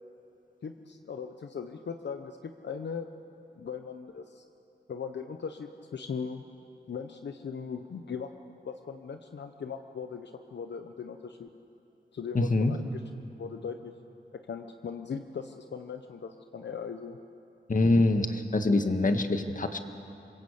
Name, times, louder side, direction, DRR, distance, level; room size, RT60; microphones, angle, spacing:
voice 1, 0.6-3.1 3.6-4.4 4.9-6.4 6.9-11.5 12.1-13.0 13.4-13.9 14.3-17.2, left 6 dB, 75° left, 6 dB, 1.0 m, -39 dB
voice 2, 12.3-12.7 17.7-19.8, left 2 dB, 45° left, 7 dB, 1.7 m, -24 dB
28.5 x 21.5 x 8.3 m, 2.7 s
wide cardioid pair, 80°, 18 cm